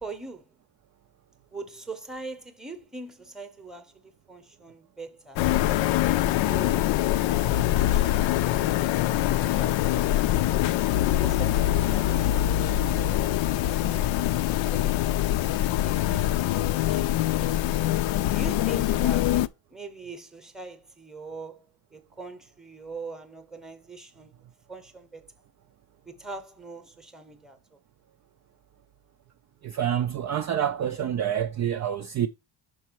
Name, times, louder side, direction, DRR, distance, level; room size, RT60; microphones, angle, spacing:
voice 1, 0.0-0.5 1.5-5.5 6.1-7.1 7.8-10.6 11.2-15.0 15.8-17.6 18.2-24.4 24.7-25.3 26.0-27.6, right 3 dB, ahead, 0.9 m, -43 dB
sound 1, 5.4-19.5, left 13 dB, 65° left, 0.6 m, -24 dB
voice 2, 29.6-32.3, right 9 dB, 40° right, 0.4 m, -27 dB
6.2 x 4.6 x 4.5 m
cardioid pair, 155°, 49 cm